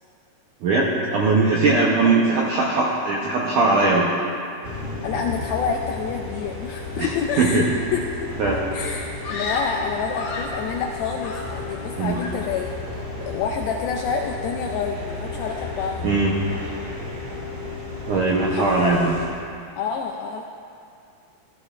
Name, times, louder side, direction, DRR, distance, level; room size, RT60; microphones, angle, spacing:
voice 1, 0.6-4.1 7.0-7.1 7.4-7.6 8.4-8.6 12.0-12.2 16.0-16.3 18.1-19.1, right 3 dB, 75° right, -4 dB, 1.9 m, -20 dB
sound 1, 4.6-19.3, left 3 dB, 45° right, 4.1 m, -33 dB
voice 2, 5.0-8.3 8.7-16.1 18.4-19.3 19.8-20.4, left 6 dB, 85° left, 1 dB, 2.1 m, -28 dB
Screaming, 9.2-10.7 11.2-11.8 12.1-12.5, left 2 dB, 65° left, 2.9 m, -32 dB
15.0 x 14.0 x 2.5 m, 2.4 s
omnidirectional pair, 4.8 m